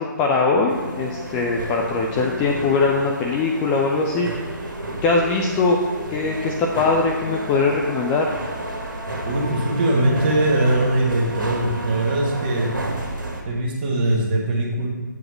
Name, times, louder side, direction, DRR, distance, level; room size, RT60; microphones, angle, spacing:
voice 1, 0.0-4.6 5.0-5.8 6.1-8.4, left 4 dB, 10° left, 0 dB, 0.3 m, -21 dB
sound 1, 0.7-13.4, right 1 dB, 75° right, 1.8 m, -31 dB
voice 2, 9.2-12.7 13.4-14.9, right 1 dB, 30° right, -2 dB, 1.6 m, -21 dB
8.1 x 4.8 x 5.9 m, 1.3 s
figure-of-eight pair, 140°, 11 cm